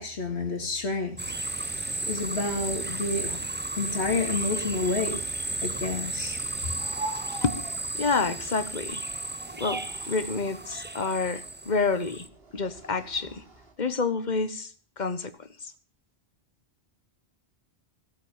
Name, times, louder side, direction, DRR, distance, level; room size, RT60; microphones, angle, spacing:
voice 1, 0.0-1.4 2.1-3.4 3.8-5.2 5.6-6.4, left 3 dB, 70° left, 2.7 m, -29 dB
sound 1, 1.2-12.3, right 2 dB, 15° right, 0.5 m, -34 dB
sound 2, 6.8-13.7, right 3 dB, 65° right, 3.3 m, -43 dB
voice 2, 7.9-9.0 9.6-9.8 10.1-12.3 12.5-13.4 13.8-14.7 15.0-15.5, left 4 dB, 45° left, 1.3 m, -28 dB
16.5 x 8.5 x 7.1 m
omnidirectional pair, 1.1 m